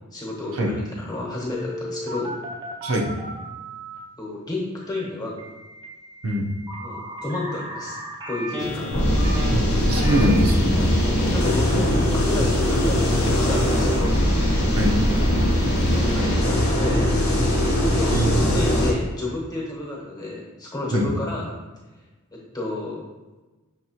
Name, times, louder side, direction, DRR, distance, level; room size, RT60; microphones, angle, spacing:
voice 1, 0.1-0.8 1.1-2.3 4.2-5.4 6.8-8.0 8.3-8.8 10.7-10.9 11.3-14.2 15.7-17.1 18.0-21.5 22.3-23.0, left 2 dB, 20° left, -4 dB, 1.0 m, -31 dB
Telephone, 1.5-4.0 5.4-18.2, right 1 dB, 20° right, 0.5 m, -37 dB
sound 1, 8.6-16.4, left 3 dB, 70° left, 0.3 m, -34 dB
sound 2, 8.9-18.9, equal, 45° left, 0.8 m, -21 dB
voice 2, 9.5-10.8 14.8-15.0 18.1-18.4 20.9-21.1, right 1 dB, 75° right, -1 dB, 0.7 m, -23 dB
5.9 x 3.0 x 2.9 m, 1.2 s
head